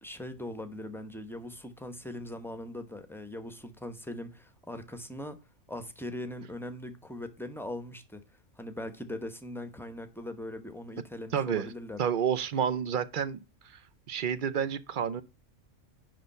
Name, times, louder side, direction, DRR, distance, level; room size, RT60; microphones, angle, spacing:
voice 1, 0.0-5.4 5.7-8.2 8.6-12.0, left 1 dB, ahead, 0.8 m, -40 dB
voice 2, 11.3-11.7 12.0-13.4 14.1-15.2, right 8 dB, 50° right, 0.7 m, -29 dB
10.0 x 3.4 x 5.3 m
omnidirectional pair, 1.3 m